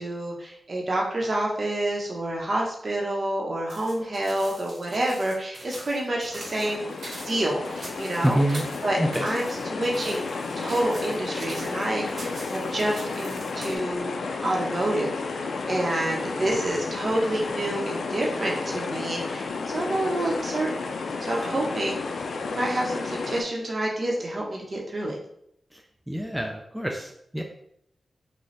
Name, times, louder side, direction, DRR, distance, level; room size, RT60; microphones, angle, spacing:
voice 1, 0.0-6.9 7.3-8.4 8.8-10.3 10.6-14.1 14.4-20.9 21.2-22.0 22.5-25.2, right 1 dB, 45° right, -2 dB, 0.9 m, -28 dB
sound 1, 3.7-13.8, right 1 dB, 75° right, 1.3 m, -42 dB
sound 2, 6.4-23.4, left 4 dB, 80° left, 0.4 m, -32 dB
voice 2, 8.2-8.7 9.0-9.3 25.7-27.4, right 1 dB, 5° right, 2 dB, 0.3 m, -27 dB
4.0 x 2.2 x 3.3 m, 0.73 s
wide cardioid pair, 105°, 0 cm